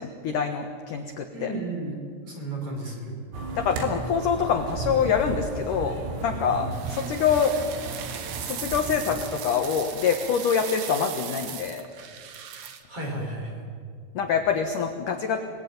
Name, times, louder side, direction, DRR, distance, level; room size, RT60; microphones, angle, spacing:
voice 1, 0.0-1.5 3.6-7.6 8.5-11.8 14.2-15.4, left 6 dB, 70° left, 5 dB, 2.0 m, -25 dB
voice 2, 1.3-2.0 2.3-3.2 6.5-6.7 12.9-13.7, right 2 dB, 30° right, 0 dB, 5.4 m, -33 dB
sound 1, 3.3-9.3, right 4 dB, 80° right, 5.3 m, -35 dB
sound 2, 6.7-12.8, right 8 dB, 65° right, 2.1 m, -38 dB
28.0 x 20.5 x 9.5 m, 2.1 s
omnidirectional pair, 5.6 m